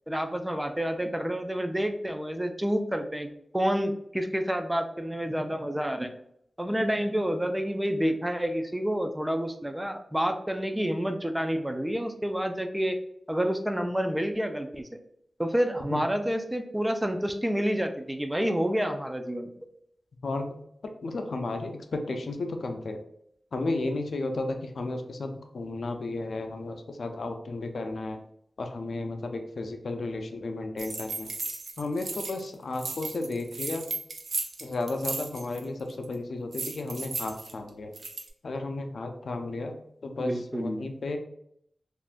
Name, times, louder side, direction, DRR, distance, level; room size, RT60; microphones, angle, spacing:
voice 1, 0.1-3.3 3.5-6.1 6.6-13.0 13.3-14.9 15.4-19.5 40.2-40.9, equal, 10° right, 6 dB, 0.3 m, -29 dB
voice 2, 20.2-20.5 21.0-23.0 23.5-28.2 28.6-31.3 31.8-33.9 34.6-37.9 38.4-41.2, left 2 dB, 80° left, 5 dB, 0.4 m, -33 dB
sound 1, 30.8-32.5 32.7-35.6 35.9-36.1 36.5-38.3, right 3 dB, 75° right, 0.5 m, -35 dB
3.5 x 2.5 x 2.4 m, 0.72 s
wide cardioid pair, 90°, 0 cm